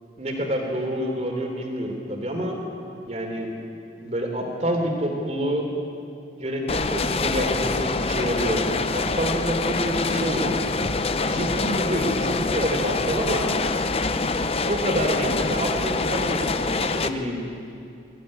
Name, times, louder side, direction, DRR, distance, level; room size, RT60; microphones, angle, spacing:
voice 1, 0.2-2.6 3.1-3.6 4.0-5.6 6.4-10.6 11.2-13.5 14.6-17.4, equal, 40° right, 2 dB, 3.4 m, -27 dB
sound 1, 6.7-17.1, left 3 dB, 35° left, 0.7 m, -25 dB
23.0 x 15.5 x 9.9 m, 2.6 s
head